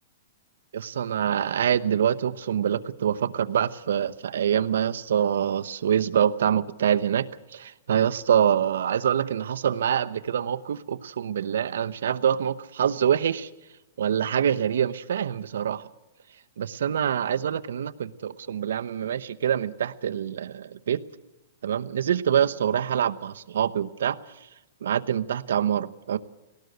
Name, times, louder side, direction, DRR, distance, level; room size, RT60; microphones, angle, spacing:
voice 1, 0.7-7.3 7.5-13.5 14.0-15.9 16.6-21.0 21.6-24.2 24.8-26.2, right 9 dB, 75° right, 11 dB, 0.9 m, -25 dB
19.0 x 18.0 x 7.9 m, 1.0 s
hypercardioid pair, 170°, 0 cm